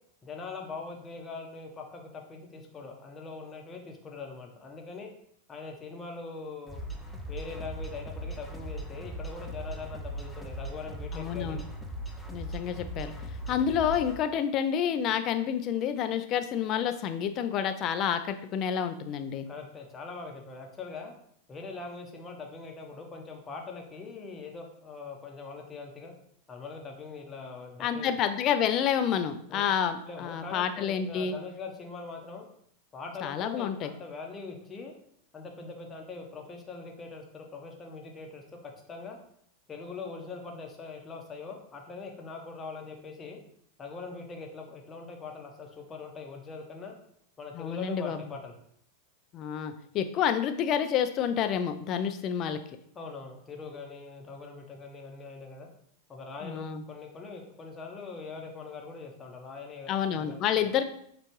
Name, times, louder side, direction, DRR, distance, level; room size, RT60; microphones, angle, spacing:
voice 1, 0.2-5.1 5.5-6.8 7.3-11.6 13.5-13.6 19.5-21.1 21.5-26.1 26.5-28.1 29.5-29.6 30.1-32.5 32.9-34.9 35.3-39.2 39.7-43.4 43.8-46.9 47.4-48.6 52.9-55.7 56.1-59.9 60.1-60.7, left 4 dB, 25° left, 2 dB, 0.9 m, -42 dB
sound 1, 6.7-14.2, right 1 dB, 5° left, 0.6 m, -39 dB
voice 2, 11.1-11.6 12.3-13.1 13.5-19.5 27.8-31.3 33.2-33.9 47.5-48.2 49.3-52.6 56.4-56.8 59.9-60.8, left 8 dB, 40° left, 9 dB, 0.4 m, -29 dB
6.4 x 2.5 x 3.1 m, 0.68 s
hypercardioid pair, 95°, 0 cm